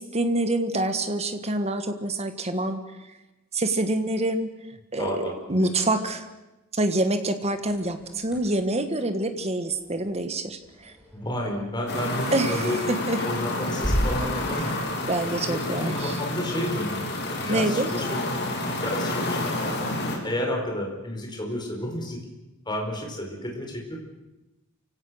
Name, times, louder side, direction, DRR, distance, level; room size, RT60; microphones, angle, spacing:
voice 1, 0.0-2.8 3.5-4.5 4.9-6.2 6.7-10.9 12.3-13.2 14.6-14.7 15.1-16.2 17.5-17.9, right 2 dB, 30° right, 8 dB, 1.6 m, -26 dB
voice 2, 5.0-5.7 11.1-12.8 13.2-14.8 15.5-17.1 17.4-18.5 18.8-19.8 20.2-22.2 22.7-24.0, left 1 dB, 20° left, 0 dB, 4.8 m, -31 dB
sound 1, 7.5-15.8, equal, ahead, 6.1 m, -36 dB
sound 2, 11.9-20.2, left 2 dB, 50° left, 3.6 m, -29 dB
28.5 x 17.0 x 6.5 m, 1.0 s
head